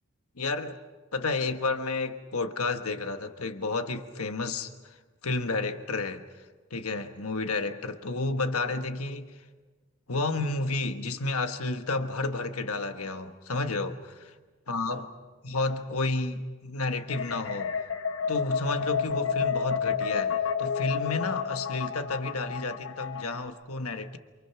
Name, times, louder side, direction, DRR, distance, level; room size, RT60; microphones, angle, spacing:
voice 1, 0.4-0.8 1.1-5.0 5.2-6.2 6.7-9.3 10.1-14.3 14.7-15.1 15.4-17.7 18.3-24.2, left 3 dB, 85° left, 1.3 m, -31 dB
sound 1, 17.1-23.5, left 6 dB, 60° left, 1.5 m, -30 dB
29.0 x 28.0 x 5.9 m
head